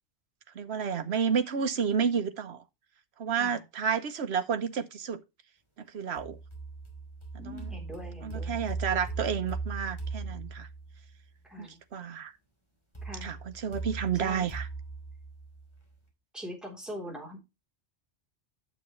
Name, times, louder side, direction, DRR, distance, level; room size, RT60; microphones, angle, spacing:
voice 1, 0.5-2.6 3.2-5.2 5.9-6.4 7.4-7.7 8.2-10.7 11.6-12.3 13.2-14.7, right 7 dB, 65° right, 1.2 m, -31 dB
sound 1, 6.2-11.1 12.9-16.0, right 4 dB, 25° left, 3.1 m, -39 dB
voice 2, 7.4-8.6 11.4-11.8 13.0-13.3 14.1-14.5 16.3-17.4, equal, ahead, 3.6 m, -42 dB
9.2 x 8.0 x 3.1 m
omnidirectional pair, 1.2 m